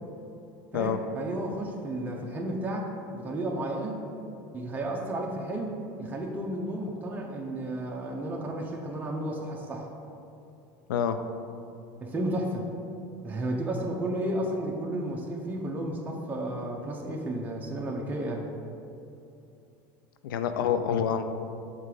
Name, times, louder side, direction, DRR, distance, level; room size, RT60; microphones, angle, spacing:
voice 1, 0.7-4.0 4.5-9.9 12.0-12.7 13.2-18.5, right 1 dB, 15° right, -2 dB, 0.7 m, -32 dB
voice 2, 20.2-21.3, left 8 dB, 85° left, 9 dB, 0.4 m, -27 dB
5.4 x 3.8 x 4.8 m, 2.7 s
supercardioid pair, 110°, 11 cm